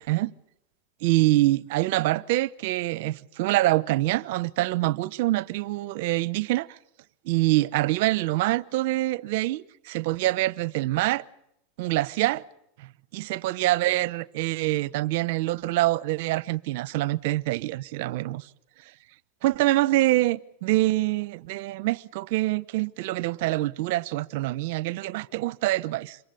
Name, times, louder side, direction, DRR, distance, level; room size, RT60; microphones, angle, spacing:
voice 1, 1.0-6.8 7.2-11.2 11.8-12.4 13.1-18.5 19.4-26.2, right 17 dB, 65° right, 0.9 m, -25 dB
27.0 x 23.5 x 6.9 m
hypercardioid pair, 110°, 0 cm